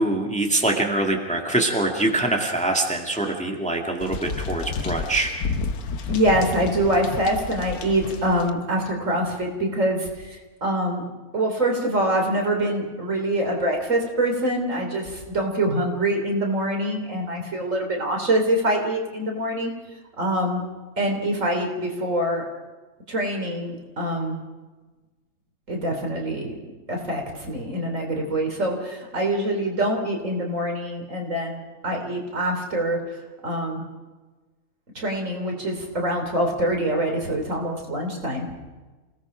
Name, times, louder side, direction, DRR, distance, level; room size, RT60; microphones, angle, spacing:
voice 1, 0.0-5.3, right 2 dB, 5° left, 1 dB, 2.0 m, -24 dB
sound 1, 4.0-8.5, left 4 dB, 85° left, 1.5 m, -31 dB
voice 2, 6.1-10.1 10.6-11.0 11.3-19.7 20.2-20.6 21.0-22.4 23.1-24.4 25.7-26.6 26.9-31.6 31.8-33.0 33.4-33.8 35.0-38.5, right 1 dB, 60° right, 1 dB, 3.9 m, -24 dB
28.5 x 18.0 x 5.1 m, 1.3 s
omnidirectional pair, 1.5 m